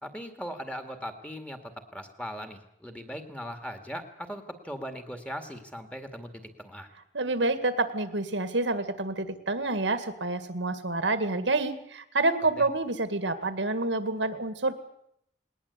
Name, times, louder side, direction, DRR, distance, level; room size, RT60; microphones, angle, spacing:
voice 1, 0.0-6.9 12.6-12.7, equal, 5° left, 7 dB, 2.1 m, -39 dB
voice 2, 7.1-14.8, right 2 dB, 85° right, 11 dB, 2.0 m, -28 dB
20.0 x 19.5 x 8.4 m, 0.73 s
head